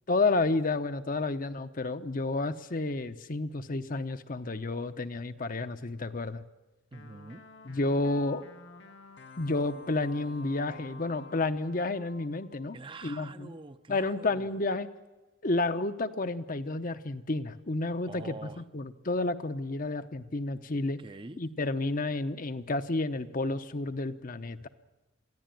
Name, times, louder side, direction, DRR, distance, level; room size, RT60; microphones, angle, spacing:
voice 1, 0.1-6.4 7.6-8.4 9.4-12.8 13.0-13.6 13.9-14.9 15.4-21.0 21.4-24.7, left 2 dB, 45° left, 9 dB, 0.9 m, -31 dB
sound 1, 6.9-13.0, left 3 dB, 70° left, 1.4 m, -51 dB
voice 2, 6.9-7.4 12.7-14.5 18.1-18.6 21.0-21.4, right 3 dB, 25° right, 10 dB, 0.7 m, -45 dB
23.0 x 14.5 x 9.2 m, 1.1 s
head